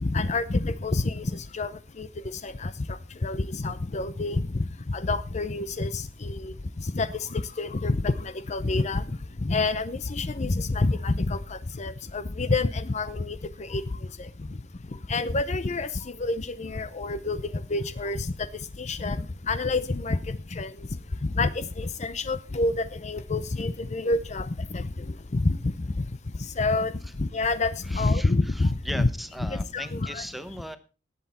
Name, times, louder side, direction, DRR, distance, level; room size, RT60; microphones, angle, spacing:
voice 1, 0.0-1.7 2.0-2.1 2.4-4.5 4.9-9.0 9.4-13.8 14.2-14.3 15.1-15.9 16.2-17.4 17.7-18.3 18.8-20.7 21.3-26.1 26.6-26.9 27.2-29.1 29.4-30.2, left 3 dB, 40° left, 13 dB, 0.6 m, -28 dB
voice 2, 27.9-30.8, equal, ahead, 10 dB, 0.9 m, -38 dB
18.0 x 8.1 x 4.2 m, 0.34 s
head